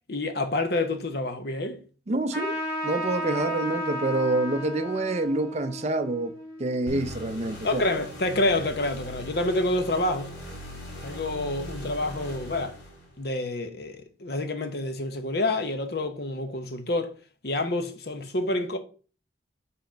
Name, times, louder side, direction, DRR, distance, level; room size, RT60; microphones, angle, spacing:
voice 1, 0.1-1.8 7.6-10.4 11.0-12.8 13.2-17.1 17.4-18.8, left 2 dB, 55° left, 0.9 m, -28 dB
voice 2, 2.1-2.6 2.8-6.3 6.6-7.8, right 2 dB, 35° right, 0.5 m, -27 dB
Trumpet, 2.3-7.3, equal, 15° left, 2.2 m, -34 dB
sound 1, 6.9-13.3, equal, 90° left, 3.0 m, -40 dB
5.4 x 4.3 x 5.1 m
head